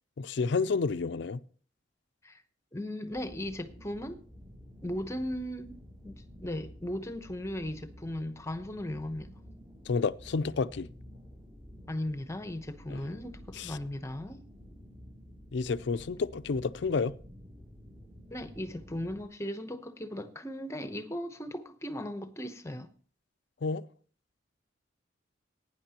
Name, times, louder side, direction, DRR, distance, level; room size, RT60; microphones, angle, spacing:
voice 1, 0.2-1.4 9.9-10.9 12.9-13.0 13.6-13.8 15.5-17.2 23.6-23.9, left 4 dB, 60° left, 0.4 m, -30 dB
voice 2, 2.7-4.2 4.8-5.8 6.0-9.3 11.9-14.4 18.3-22.9, left 1 dB, 15° left, 0.8 m, -37 dB
sound 1, 3.1-19.2, equal, 30° right, 2.8 m, -51 dB
18.0 x 9.5 x 2.9 m
head